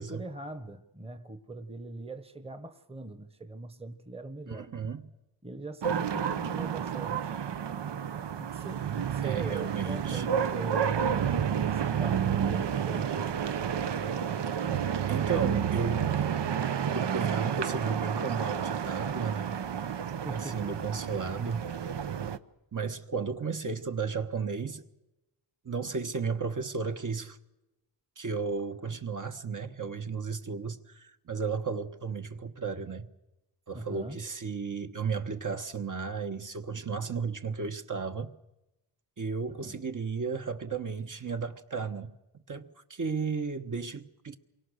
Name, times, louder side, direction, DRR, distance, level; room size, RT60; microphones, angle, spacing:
voice 1, 0.0-4.7 5.4-7.3 8.4-13.4 20.2-20.7 33.7-34.2 39.5-39.9, right 2 dB, 15° right, 1.2 m, -42 dB
voice 2, 4.5-5.1 9.2-10.3 15.1-16.1 16.8-19.6 20.3-21.7 22.7-24.9 25.6-27.4 28.2-33.1 33.7-38.3 39.2-42.1 42.5-44.4, right 5 dB, 45° right, 1.4 m, -34 dB
sound 1, 5.8-22.4, right 8 dB, 70° right, 1.0 m, -30 dB
28.0 x 23.5 x 6.5 m
wide cardioid pair, 120°, 44 cm